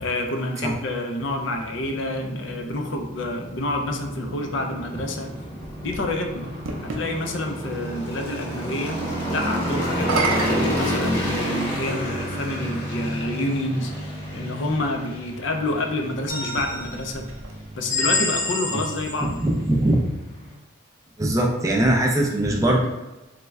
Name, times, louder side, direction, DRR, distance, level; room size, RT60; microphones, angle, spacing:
voice 1, 0.0-5.3 5.8-6.5 6.8-9.0 9.3-17.3 17.8-19.4, left 1 dB, 60° left, 4 dB, 0.4 m, -28 dB
sound 1, 1.2-20.5, equal, 10° left, 0.9 m, -31 dB
sound 2, 5.2-7.1 9.9-11.7 12.6-12.7 16.4-18.0, right 3 dB, 80° right, 0.5 m, -31 dB
sound 3, 16.3-17.1 17.9-19.3, left 3 dB, 40° left, 0.8 m, -27 dB
voice 2, 19.4-20.0 21.2-22.9, right 1 dB, 15° right, 0 dB, 0.3 m, -21 dB
3.2 x 2.1 x 3.4 m, 1.0 s
head